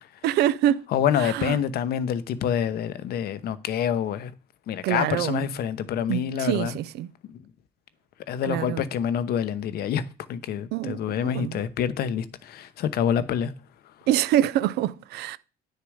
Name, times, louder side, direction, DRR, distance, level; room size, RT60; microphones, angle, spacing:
voice 1, 0.2-0.8 1.2-1.6 4.8-5.5 6.1-7.1 8.4-8.8 10.7-11.6 14.1-15.4, right 12 dB, 80° right, 0.5 m, -25 dB
voice 2, 0.9-4.3 4.7-6.8 8.3-10.0 10.3-13.5, left 9 dB, 70° left, 0.9 m, -27 dB
9.2 x 6.7 x 4.9 m
cardioid pair, 110°, 17 cm